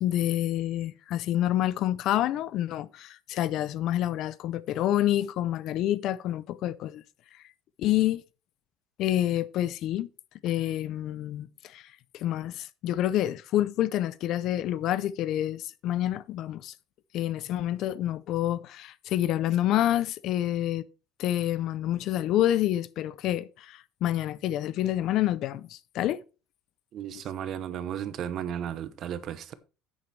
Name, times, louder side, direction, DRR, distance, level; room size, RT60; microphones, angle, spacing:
voice 1, 0.0-7.0 7.8-8.2 9.0-10.1 10.4-16.7 17.1-20.9 21.2-26.2 27.1-27.2, left 13 dB, 45° left, 0.5 m, -28 dB
voice 2, 26.9-29.5, right 9 dB, 35° right, 0.8 m, -34 dB
10.0 x 8.6 x 3.3 m
cardioid pair, 175°, 0 cm